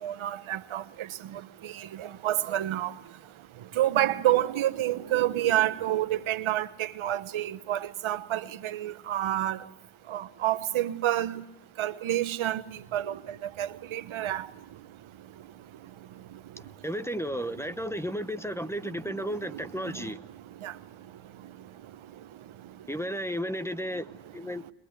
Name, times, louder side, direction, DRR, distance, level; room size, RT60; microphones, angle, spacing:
voice 1, 0.0-2.9 3.7-9.6 10.1-11.4 11.8-14.5 18.8-18.9 19.5-20.0 20.6-20.7, right 13 dB, 80° right, 1.1 m, -29 dB
voice 2, 16.6-20.2 22.9-24.6, equal, 5° left, 1.0 m, -33 dB
22.0 x 21.0 x 9.5 m
cardioid pair, 65°, 48 cm